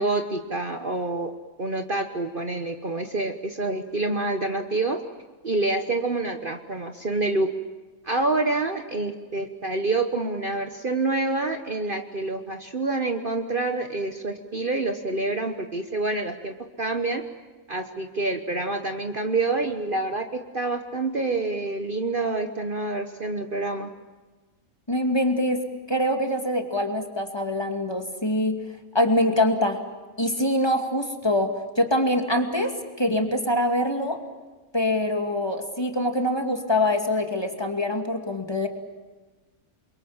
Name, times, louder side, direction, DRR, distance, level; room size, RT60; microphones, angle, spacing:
voice 1, 0.0-5.0 5.4-7.5 8.0-17.2 17.7-23.9, right 2 dB, 40° right, 6 dB, 1.4 m, -27 dB
voice 2, 24.9-25.6 25.9-28.6 28.9-29.8 30.2-31.5 31.8-32.7 33.0-34.2 34.7-38.7, left 1 dB, 20° left, 4 dB, 2.5 m, -24 dB
29.0 x 23.0 x 7.4 m, 1.3 s
omnidirectional pair, 1.5 m